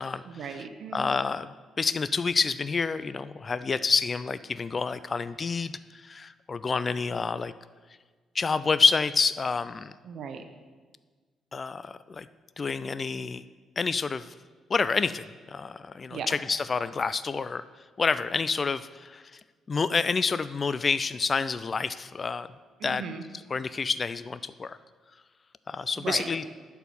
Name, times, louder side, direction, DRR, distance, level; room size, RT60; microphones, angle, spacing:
voice 1, 0.3-1.1 10.0-10.4 16.1-16.3 22.8-23.2 26.0-26.3, right 6 dB, 65° right, 7 dB, 0.8 m, -37 dB
voice 2, 0.9-1.5 1.8-7.5 8.3-9.9 11.5-12.3 12.6-13.4 13.8-14.3 14.7-17.6 18.0-19.4 19.7-22.5 22.8-23.0 23.5-24.8 25.7-26.4, left 4 dB, 35° left, 14 dB, 0.3 m, -28 dB
11.0 x 4.6 x 7.0 m, 1.5 s
cardioid pair, 90°, 0 cm